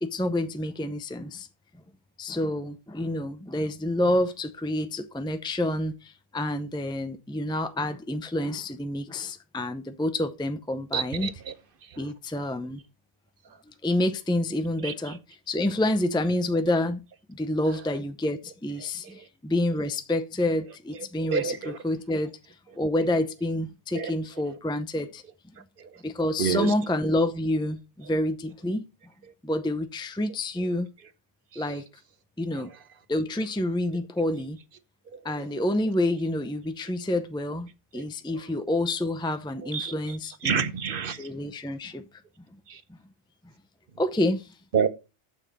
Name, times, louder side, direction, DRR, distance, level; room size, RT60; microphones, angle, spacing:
voice 1, 0.0-1.5 2.2-11.3 12.0-12.8 13.7-17.0 17.3-25.2 26.0-28.8 29.4-30.9 31.6-31.8 32.4-32.7 33.1-34.6 35.2-40.7 41.2-42.0 44.0-44.5, left 1 dB, 5° left, 0.3 m, -28 dB
voice 2, 10.9-11.3 14.8-14.9 21.3-21.8 23.9-24.1 26.4-26.7 31.5-31.6 39.7-39.9 40.4-41.2 42.7-42.8 44.7-44.9, right 7 dB, 50° right, 0.9 m, -27 dB
8.9 x 7.2 x 4.0 m
omnidirectional pair, 1.4 m